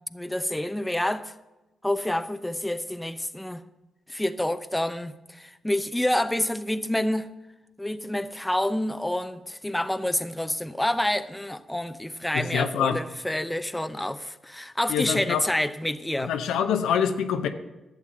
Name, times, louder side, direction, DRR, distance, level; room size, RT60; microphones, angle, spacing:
voice 1, 0.1-1.4 1.8-3.6 4.1-7.3 7.8-16.3, left 1 dB, 10° left, 0.8 m, -28 dB
voice 2, 12.3-13.0 14.9-15.4 16.3-17.5, left 8 dB, 80° left, 0.8 m, -25 dB
11.5 x 7.4 x 7.6 m
supercardioid pair, 50°, 0 cm